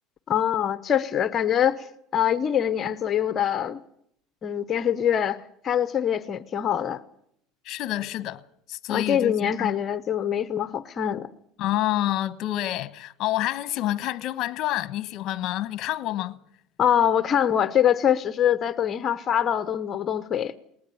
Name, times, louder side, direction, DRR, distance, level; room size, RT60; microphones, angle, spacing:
voice 1, 0.3-3.8 4.4-7.0 8.9-11.3 16.8-20.5, left 9 dB, 30° left, 0.8 m, -24 dB
voice 2, 7.6-8.4 8.7-9.7 11.6-16.4, left 14 dB, 50° left, 1.1 m, -28 dB
19.5 x 19.0 x 8.4 m
supercardioid pair, 130°, 0 cm